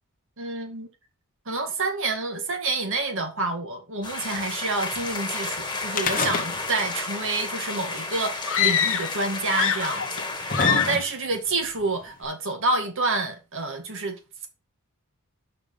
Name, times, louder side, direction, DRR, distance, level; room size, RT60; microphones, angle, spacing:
voice 1, 0.4-0.9 1.5-14.5, right 3 dB, 60° right, 2.2 m, -28 dB
sound 1, 4.0-11.0, left 3 dB, 20° left, 1.7 m, -32 dB
sound 2, 5.9-6.9 7.2-7.3 8.3-8.4 9.3-9.4 10.0-11.4 12.2-12.3, left 4 dB, 40° left, 1.1 m, -28 dB
sound 3, 8.5-9.2 9.5-10.2 10.5-11.1, left 9 dB, 60° left, 1.2 m, -24 dB
6.8 x 5.2 x 5.5 m
head